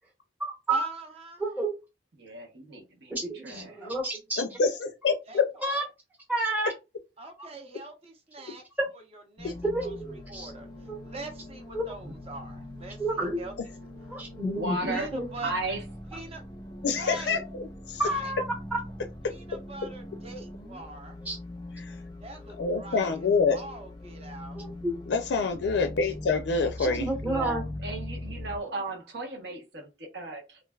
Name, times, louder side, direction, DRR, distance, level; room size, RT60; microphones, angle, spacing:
voice 1, 0.7-1.4 5.3-5.8 7.2-8.6 8.9-9.5 9.8-9.9 10.3-10.7 11.0-13.5 14.9-15.5 16.1-16.4 17.0-17.4 18.0-18.3 19.3-21.2 22.2-24.6, right 2 dB, 35° right, 0.8 m, -43 dB
voice 2, 1.4-1.7 3.1-4.4 5.6-5.8 6.3-6.7 7.4-7.5 9.6-10.5 10.9-11.0 11.7-12.1 13.0-13.4 14.1-15.3 18.0-18.4 21.2-21.4 24.5-24.9 26.8-27.6, right 2 dB, 10° right, 0.9 m, -30 dB
voice 3, 2.2-3.8 14.6-15.1 15.4-15.8 27.2-30.6, right 2 dB, 70° right, 0.9 m, -35 dB
voice 4, 4.4-5.5 9.4-9.5 16.8-18.0 19.2-19.3 21.8-22.0 22.6-23.6 25.1-27.1, left 4 dB, 75° left, 0.4 m, -26 dB
sound 1, 9.4-28.6, left 1 dB, 25° left, 0.5 m, -42 dB
3.2 x 2.4 x 2.3 m
head